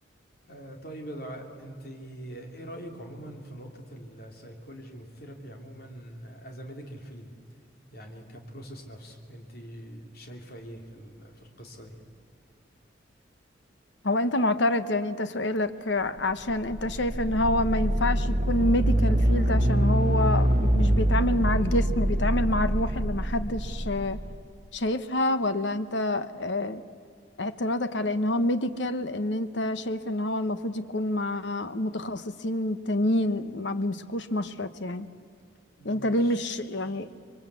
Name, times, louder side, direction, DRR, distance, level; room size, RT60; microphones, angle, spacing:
voice 1, 0.5-7.3 7.9-12.1 35.8-37.0, right 1 dB, 55° left, 3 dB, 3.2 m, -43 dB
voice 2, 14.0-24.2 24.7-26.8 27.4-35.1 35.8-37.1, left 1 dB, 70° left, 12 dB, 1.1 m, -27 dB
sound 1, 16.3-24.3, right 1 dB, 45° right, 1.3 m, -24 dB
27.0 x 22.5 x 8.3 m, 2.2 s
head